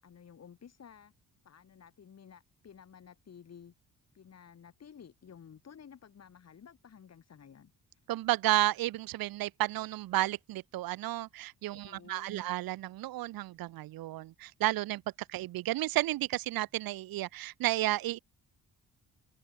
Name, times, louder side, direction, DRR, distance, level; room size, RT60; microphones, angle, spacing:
voice 1, 0.0-1.1 1.4-3.7 4.1-7.7 11.7-12.5, left 7 dB, 45° left, 6.0 m, -53 dB
voice 2, 8.1-15.0 15.3-18.2, right 16 dB, 75° right, 0.6 m, -32 dB
open air
cardioid pair, 155°, 36 cm